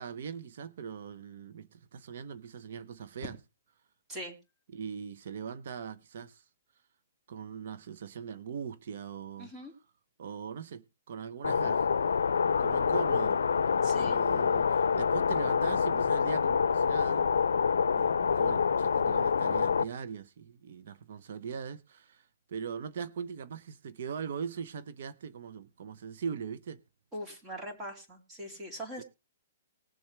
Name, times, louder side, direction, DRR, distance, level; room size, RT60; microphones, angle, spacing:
voice 1, 0.0-3.4 4.7-6.4 7.3-9.5 10.2-12.2 12.6-17.3 17.9-26.8 29.0-29.1, right 7 dB, 65° right, 0.9 m, -41 dB
voice 2, 9.4-9.7 13.8-14.2 27.1-29.0, equal, 15° right, 3.2 m, -41 dB
sound 1, 11.4-19.8, left 6 dB, 90° left, 0.5 m, -27 dB
20.0 x 7.3 x 3.4 m
hypercardioid pair, 150°, 0 cm